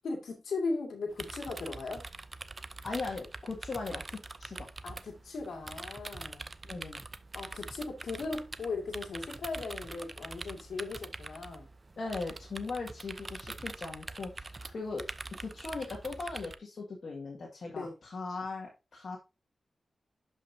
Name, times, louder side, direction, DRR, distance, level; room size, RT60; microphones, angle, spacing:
voice 1, 0.0-2.0 4.8-6.5 7.3-11.7 14.6-14.7 17.8-17.9, left 3 dB, 90° left, 2.1 m, -38 dB
sound 1, 1.1-16.6, right 3 dB, 30° right, 0.6 m, -44 dB
voice 2, 2.8-4.7 6.6-7.0 12.0-15.0 15.3-19.2, left 3 dB, 60° left, 2.0 m, -39 dB
11.5 x 5.5 x 2.7 m
wide cardioid pair, 95°, 0 cm